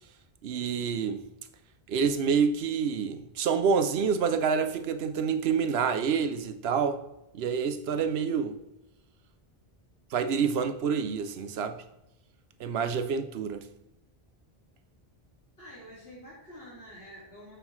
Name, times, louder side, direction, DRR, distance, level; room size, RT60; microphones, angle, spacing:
voice 1, 0.4-1.2 1.9-7.0 7.3-8.6 10.1-11.8 12.6-13.7, right 6 dB, 80° right, 0.9 m, -27 dB
voice 2, 15.6-17.6, equal, 75° left, 2.7 m, -47 dB
9.1 x 6.8 x 3.1 m
omnidirectional pair, 1.0 m